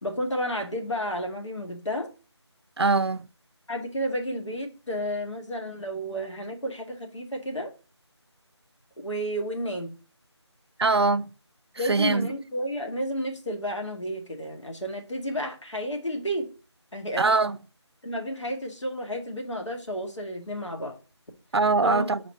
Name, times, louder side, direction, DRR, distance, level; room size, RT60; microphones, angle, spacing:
voice 1, 0.0-2.1 3.7-7.7 9.0-9.9 11.8-16.5 16.9-17.3 18.0-21.0 21.8-22.1, equal, 85° left, 1.7 m, -31 dB
voice 2, 2.8-3.3 10.8-11.3 11.7-12.3 17.2-17.6 21.5-22.2, right 3 dB, 60° right, 0.4 m, -22 dB
5.0 x 4.1 x 5.2 m
figure-of-eight pair, 170°, 15 cm